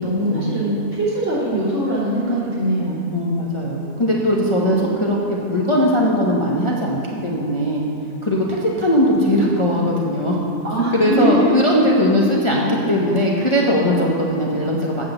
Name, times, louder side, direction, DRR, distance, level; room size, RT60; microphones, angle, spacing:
voice 1, 0.0-3.1 4.6-5.2 10.6-11.5 13.4-13.5, right 1 dB, 60° right, -9 dB, 3.4 m, -22 dB
voice 2, 3.1-7.8 8.2-10.4 10.9-15.1, equal, 25° left, -3 dB, 0.9 m, -19 dB
8.3 x 6.2 x 7.8 m, 2.5 s
omnidirectional pair, 1.5 m